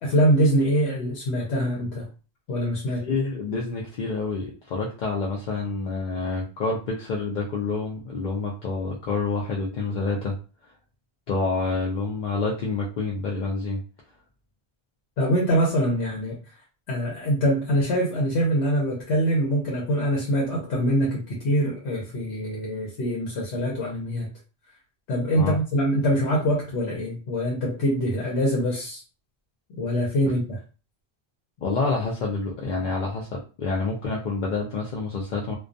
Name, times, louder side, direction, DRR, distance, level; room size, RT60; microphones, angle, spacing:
voice 1, 0.0-2.1 2.5-3.0 15.2-16.4 16.9-24.3 25.1-29.0 29.7-30.6, equal, 80° left, -3 dB, 1.0 m, -24 dB
voice 2, 2.9-10.4 11.3-13.8 25.3-25.6 31.6-35.6, left 3 dB, 55° left, -2 dB, 0.5 m, -28 dB
2.2 x 2.2 x 2.5 m, 0.34 s
omnidirectional pair, 1.1 m